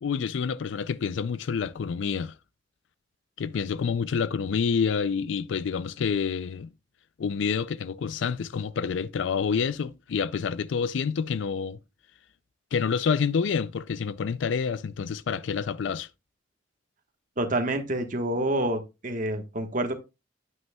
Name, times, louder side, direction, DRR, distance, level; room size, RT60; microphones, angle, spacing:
voice 1, 0.0-2.3 3.4-6.7 7.2-11.8 12.7-16.1, left 6 dB, 80° left, 0.4 m, -28 dB
voice 2, 17.4-19.9, right 1 dB, 45° right, 1.2 m, -28 dB
9.2 x 9.2 x 2.2 m
head